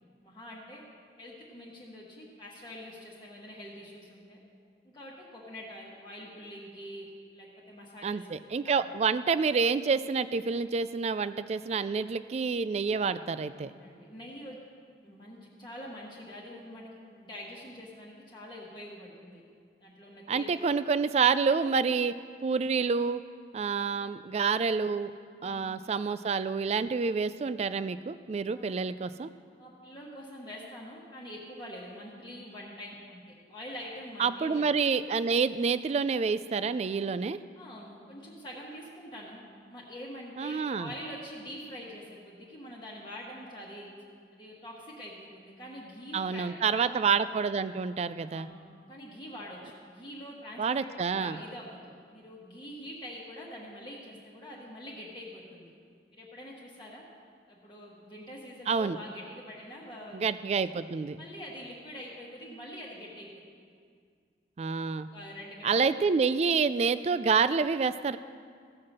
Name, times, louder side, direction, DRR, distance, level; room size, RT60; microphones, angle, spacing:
voice 1, 0.2-0.8 1.2-4.4 4.8-8.8 13.6-14.6 15.0-19.4 19.8-20.8 23.5-23.6 25.4-25.8 28.5-28.7 29.6-34.9 37.5-43.9 44.3-47.1 48.2-55.7 56.1-57.0 57.5-60.6 61.2-63.7 65.1-65.7, equal, 25° left, -4 dB, 1.3 m, -45 dB
voice 2, 8.0-13.7 20.3-22.1 22.4-23.2 23.5-25.1 25.4-29.3 34.2-37.4 40.4-40.9 46.1-48.5 50.6-51.4 58.7-59.0 60.1-61.2 64.6-65.1 65.6-68.2, right 5 dB, 35° right, 14 dB, 0.3 m, -28 dB
15.0 x 5.7 x 6.5 m, 2.1 s
head